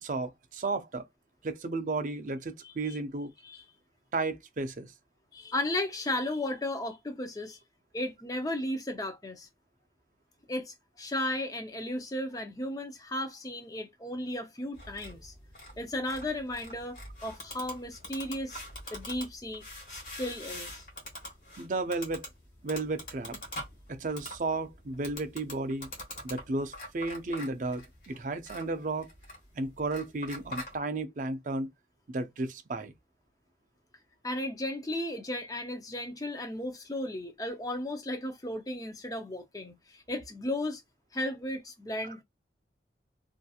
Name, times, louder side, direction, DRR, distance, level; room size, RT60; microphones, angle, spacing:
voice 1, 0.0-1.1 1.4-3.3 4.1-4.9 21.6-22.3 22.6-23.4 23.9-25.9 26.2-29.1 29.5-31.7 32.1-32.9 42.0-42.1, right 3 dB, 45° right, 0.4 m, -33 dB
voice 2, 2.6-3.0 3.4-3.6 5.3-7.6 7.9-9.5 10.5-15.3 15.8-18.6 18.9-20.8 34.2-40.8 41.1-42.2, left 1 dB, 20° left, 0.5 m, -35 dB
sound 1, 14.7-30.7, left 1 dB, 45° left, 1.2 m, -45 dB
2.8 x 2.5 x 2.3 m
head